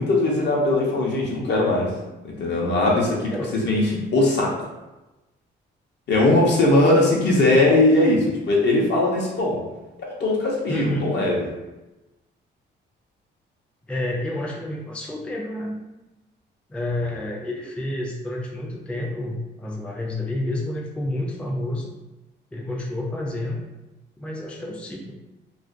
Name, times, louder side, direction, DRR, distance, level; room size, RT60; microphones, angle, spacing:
voice 1, 0.0-1.9 2.2-3.3 3.6-4.7 6.1-9.6 10.1-11.5, left 2 dB, 60° left, -2 dB, 0.7 m, -20 dB
voice 2, 10.7-11.2 13.9-15.8 16.7-21.9 22.5-23.6 24.2-25.1, left 1 dB, 5° left, -2 dB, 0.3 m, -29 dB
2.4 x 2.2 x 2.4 m, 1.0 s
cardioid pair, 90°, 20 cm